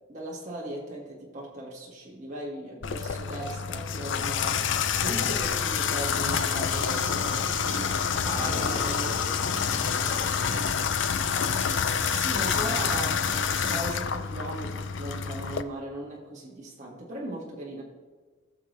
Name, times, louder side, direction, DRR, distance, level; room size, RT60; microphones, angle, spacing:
voice 1, 0.1-4.6 5.0-9.1 12.0-17.8, right 1 dB, 35° right, -4 dB, 1.7 m, -38 dB
Water tap faucet / Bathtub (filling or washing), 2.8-15.6, left 7 dB, 60° left, 0.5 m, -28 dB
sound 1, 6.2-13.7, right 3 dB, 65° right, 2.0 m, -42 dB
voice 2, 8.2-11.0, equal, 15° right, -6 dB, 3.0 m, -41 dB
17.0 x 6.8 x 3.2 m, 1.4 s
head